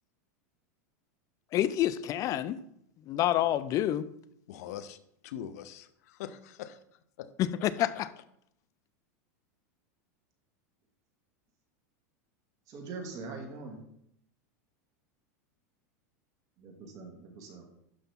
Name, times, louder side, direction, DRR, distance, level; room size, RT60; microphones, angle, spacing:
voice 1, 1.5-2.6 3.1-4.1 7.4-8.1, left 12 dB, 40° left, 0.6 m, -28 dB
voice 2, 4.5-5.0 5.2-6.8 7.2-7.3, left 10 dB, 70° left, 0.9 m, -42 dB
voice 3, 12.7-13.8 16.6-17.7, right 4 dB, 40° right, 2.5 m, -43 dB
11.5 x 5.8 x 3.7 m
supercardioid pair, 120°, 9 cm